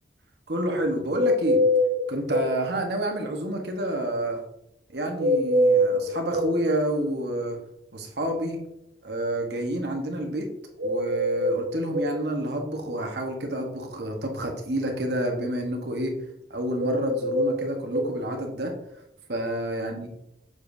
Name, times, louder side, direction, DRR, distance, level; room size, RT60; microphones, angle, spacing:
voice 1, 0.5-1.6 2.1-4.4 4.9-7.6 7.9-8.6 9.0-10.5 10.8-16.1 16.5-18.7 19.3-20.1, right 1 dB, 65° right, 3 dB, 1.2 m, -29 dB
sound 1, 1.1-2.5 5.2-6.6 10.8-12.2 16.7-18.1, equal, 90° right, 2.7 m, -23 dB
7.5 x 6.6 x 2.7 m, 0.84 s
head